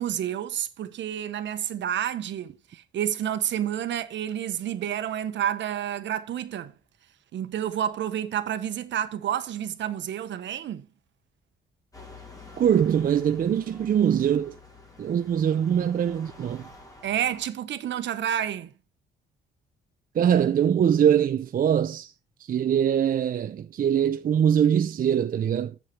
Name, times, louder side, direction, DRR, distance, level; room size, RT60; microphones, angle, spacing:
voice 1, 0.0-6.7 7.3-10.9 17.0-18.7, right 10 dB, 65° right, 1.1 m, -29 dB
sound 1, 11.9-17.5, left 3 dB, 15° left, 2.6 m, -48 dB
voice 2, 12.6-14.5 15.0-16.7 20.1-22.1 22.4-25.7, right 9 dB, 45° right, 0.5 m, -23 dB
7.4 x 6.6 x 4.6 m
cardioid pair, 90°, 20 cm